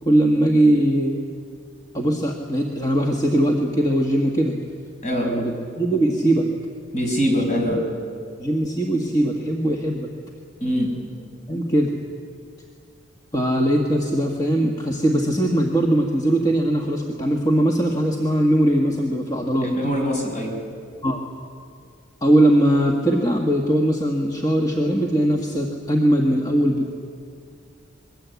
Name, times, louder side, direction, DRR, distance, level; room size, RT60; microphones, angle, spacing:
voice 1, 0.0-1.2 1.9-4.5 5.2-6.5 7.3-7.4 8.4-10.1 11.5-11.9 13.3-19.7 21.0-21.2 22.2-27.0, right 1 dB, 20° left, 0 dB, 1.7 m, -20 dB
voice 2, 5.0-5.3 6.9-7.9 10.6-10.9 19.6-20.6, equal, 40° left, 1 dB, 6.1 m, -23 dB
26.0 x 22.0 x 8.3 m, 2.3 s
head